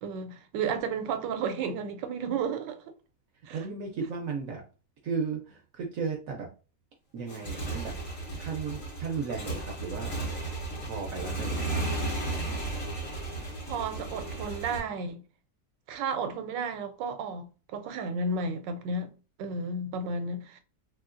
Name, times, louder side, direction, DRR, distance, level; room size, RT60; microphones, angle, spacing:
voice 1, 0.0-2.8 3.5-3.6 13.7-15.2 15.9-19.1 19.4-20.6, right 4 dB, 90° right, 1.2 m, -32 dB
voice 2, 3.5-4.6 5.0-6.5 7.1-8.0 8.4-10.1 10.8-11.9, right 5 dB, 70° right, 0.8 m, -35 dB
Motorcycle / Engine, 7.2-14.8, right 2 dB, 45° left, 1.0 m, -34 dB
3.0 x 2.9 x 2.4 m
omnidirectional pair, 1.9 m